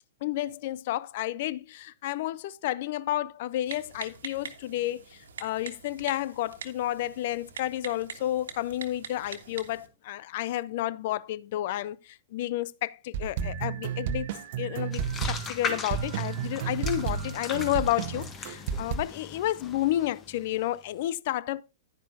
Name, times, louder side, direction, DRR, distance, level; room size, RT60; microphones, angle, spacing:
voice 1, 0.2-5.0 5.4-14.3 14.6-21.6, left 14 dB, 50° left, 0.4 m, -31 dB
Typing, 3.7-9.9, right 6 dB, 70° right, 1.4 m, -44 dB
sound 1, 13.1-19.0, right 8 dB, 50° right, 0.9 m, -32 dB
sound 2, 14.9-20.8, left 5 dB, 25° left, 1.5 m, -39 dB
10.5 x 10.0 x 2.7 m
figure-of-eight pair, 105°, 0 cm